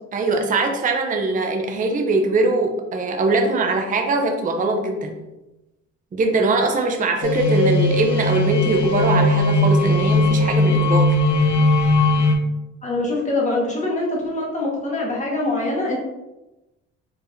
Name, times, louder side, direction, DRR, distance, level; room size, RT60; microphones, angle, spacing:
voice 1, 0.1-5.2 6.1-11.2, right 3 dB, 25° right, 4 dB, 0.5 m, -21 dB
sound 1, 7.2-12.3, left 1 dB, 85° left, 0.8 m, -18 dB
voice 2, 12.8-16.0, left 2 dB, 25° left, -2 dB, 1.3 m, -24 dB
4.7 x 3.2 x 2.5 m, 0.99 s
cardioid pair, 90°, 30 cm